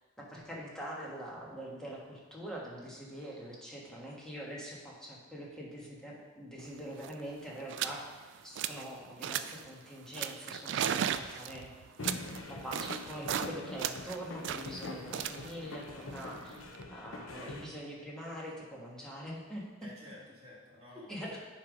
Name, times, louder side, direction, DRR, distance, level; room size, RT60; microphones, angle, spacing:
voice 1, 0.2-8.1 8.4-11.7 12.6-16.6 16.9-19.6 21.1-21.4, equal, 5° left, -4 dB, 1.3 m, -44 dB
sound 1, 6.7-6.8 6.9-7.2 7.7-8.0 8.3-8.9 9.2-9.7 10.1-13.5 13.8-16.8, right 9 dB, 60° right, 0.3 m, -36 dB
sound 2, 12.0-17.6, left 2 dB, 80° left, 0.8 m, -44 dB
voice 2, 12.1-12.5 19.8-21.4, left 1 dB, 30° right, -7 dB, 2.0 m, -53 dB
9.6 x 3.4 x 5.1 m, 1.3 s
head